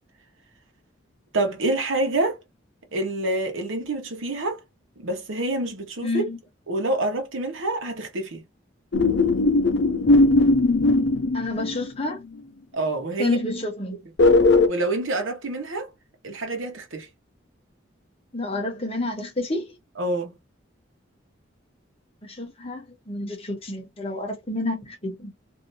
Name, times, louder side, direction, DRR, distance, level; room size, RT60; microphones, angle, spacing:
voice 1, 1.3-2.4 2.9-4.6 5.0-6.3 6.7-8.4 12.7-13.4 14.7-15.9 16.2-17.1 20.0-20.4, right 2 dB, 90° right, 1.1 m, -27 dB
voice 2, 6.0-6.4 11.3-12.2 13.2-14.0 18.3-19.7 22.2-25.3, left 2 dB, 30° left, 0.9 m, -29 dB
sound 1, 8.9-12.1 14.2-14.7, left 2 dB, 70° left, 0.5 m, -18 dB
3.3 x 2.7 x 2.7 m
head